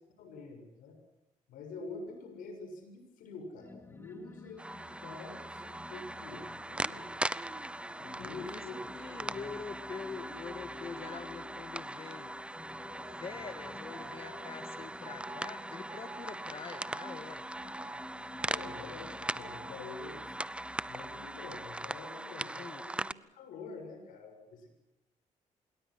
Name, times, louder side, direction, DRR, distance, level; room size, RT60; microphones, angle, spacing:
voice 1, 0.2-1.0 1.5-7.1 7.9-8.8 18.5-20.4 20.9-24.8, left 3 dB, 90° left, 6 dB, 6.8 m, -47 dB
sound 1, 3.5-22.2, left 2 dB, 15° left, 1.8 m, -51 dB
sound 2, 4.6-23.1, right 1 dB, 10° right, 0.7 m, -40 dB
sound 3, 5.2-8.2 8.7-11.7 12.9-14.6 15.1-15.5 15.9-16.4 16.7-17.2 17.5-18.1 18.4-18.9 19.2-19.7, right 3 dB, 25° right, 5.0 m, -51 dB
voice 2, 8.2-8.7 8.9-12.3 13.1-17.4 22.5-22.9, left 5 dB, 45° left, 9 dB, 1.7 m, -45 dB
27.0 x 22.5 x 6.3 m, 0.91 s
cardioid pair, 85°, 14 cm